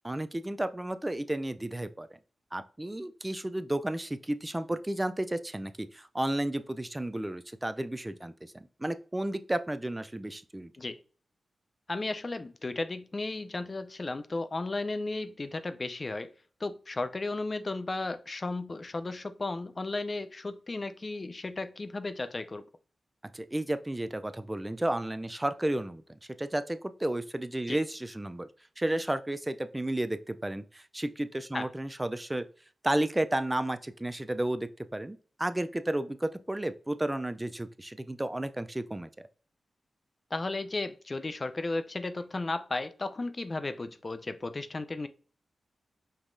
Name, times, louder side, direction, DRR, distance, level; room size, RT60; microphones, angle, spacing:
voice 1, 0.0-2.1 2.5-10.7 23.3-28.5 28.8-32.4 32.8-39.1, right 1 dB, 15° right, 0.4 m, -32 dB
voice 2, 11.9-16.3 16.6-22.6 27.7-27.8 31.5-31.7 40.3-45.1, left 2 dB, 40° left, 0.5 m, -34 dB
5.4 x 2.9 x 2.6 m
cardioid pair, 55°, 0 cm